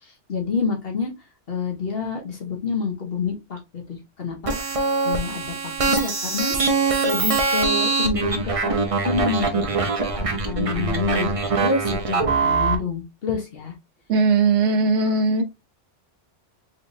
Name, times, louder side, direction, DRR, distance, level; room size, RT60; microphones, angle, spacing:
voice 1, 0.3-1.1 1.5-4.7 5.0-6.5 7.0-8.8 9.0-9.7 10.0-11.3 11.6-13.7, left 4 dB, 55° left, 1.2 m, -28 dB
sound 1, 4.5-12.8, right 4 dB, 35° right, 0.7 m, -23 dB
voice 2, 14.1-15.4, right 4 dB, 70° right, 1.0 m, -19 dB
4.0 x 3.4 x 2.6 m
omnidirectional pair, 1.2 m